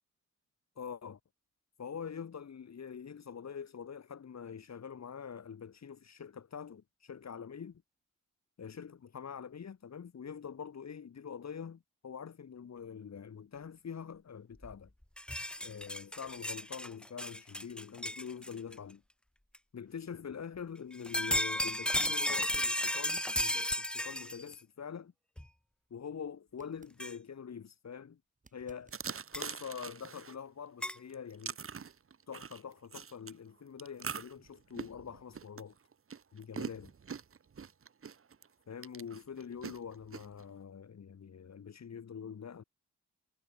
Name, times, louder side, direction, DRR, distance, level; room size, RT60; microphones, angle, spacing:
voice 1, 0.8-1.2 1.8-7.8 8.6-14.9 15.6-19.0 19.7-25.1 25.9-28.2 28.5-28.9 29.3-31.6 32.3-35.7 36.3-36.9 38.7-42.6, left 7 dB, 60° left, 6.5 m, -45 dB
sound 1, 14.6-14.7 15.0-18.7 19.5-19.6 20.9-24.5 25.4-25.5 27.0-27.1 29.3-29.4 30.8-31.0, left 1 dB, 5° left, 0.5 m, -34 dB
sound 2, 26.5-27.0 28.4-29.2 32.2-32.3, right 3 dB, 25° right, 6.0 m, -63 dB
sound 3, 28.9-30.3 30.9-33.3 33.8-38.5 38.8-40.4, right 6 dB, 45° right, 1.7 m, -43 dB
wide cardioid pair, 170°, 30 cm